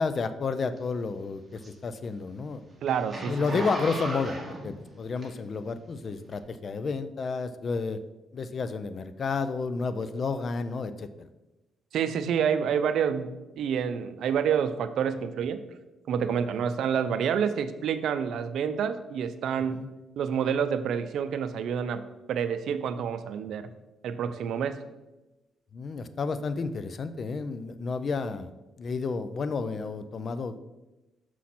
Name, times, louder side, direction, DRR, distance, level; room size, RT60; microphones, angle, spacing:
voice 1, 0.0-2.6 3.3-4.4 4.6-8.0 8.3-11.3 19.7-19.9 25.7-28.5 28.8-30.6, left 4 dB, 45° left, 12 dB, 0.5 m, -31 dB
Zipper (clothing), 0.8-5.7 6.3-6.4, right 1 dB, 20° right, 1.9 m, -37 dB
voice 2, 2.8-3.6 11.9-15.6 16.1-19.8 20.2-22.0 22.3-23.7 24.0-24.8, right 7 dB, 75° right, 11 dB, 0.5 m, -28 dB
6.2 x 5.8 x 4.2 m, 1.1 s
cardioid pair, 90°, 0 cm